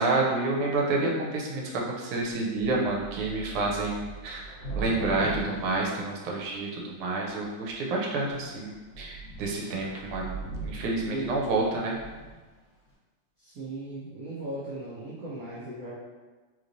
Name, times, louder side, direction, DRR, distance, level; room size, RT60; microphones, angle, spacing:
voice 1, 0.0-10.3 10.6-12.0, right 2 dB, 85° right, -2 dB, 1.6 m, -29 dB
Thunder / Rain, 2.3-2.4 2.6-6.7 7.4-7.9 8.3-8.4 8.7-12.5, right 3 dB, 75° left, 0.7 m, -40 dB
voice 2, 11.0-11.5 13.4-15.9, right 2 dB, 70° right, -8 dB, 0.8 m, -37 dB
3.4 x 3.1 x 2.5 m, 1.3 s
omnidirectional pair, 2.3 m